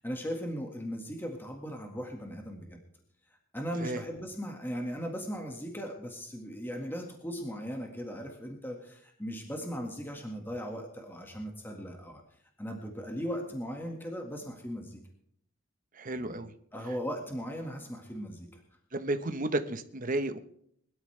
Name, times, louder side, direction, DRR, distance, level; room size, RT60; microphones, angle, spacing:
voice 1, 0.0-2.8 3.5-12.2 12.6-15.0 16.1-16.4 16.7-18.6, equal, 10° left, 2 dB, 1.9 m, -38 dB
voice 2, 15.9-16.5 18.9-20.4, right 2 dB, 40° right, 8 dB, 1.1 m, -32 dB
22.0 x 12.5 x 3.4 m, 0.66 s
head